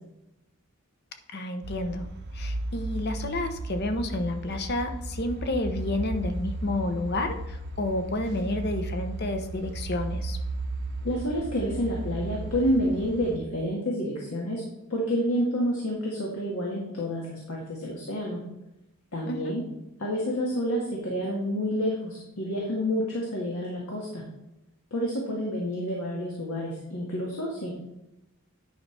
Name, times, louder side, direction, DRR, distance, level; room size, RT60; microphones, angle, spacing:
voice 1, 1.3-2.1 2.3-10.4 19.3-19.5, left 2 dB, 45° left, 7 dB, 0.8 m, -30 dB
sound 1, 1.6-13.4, right 2 dB, 50° right, 0.8 m, -35 dB
voice 2, 11.0-14.6 14.9-18.4 19.1-19.6 20.0-24.2 24.9-27.7, equal, 80° left, -3 dB, 1.7 m, -29 dB
10.0 x 5.4 x 3.3 m, 0.91 s
head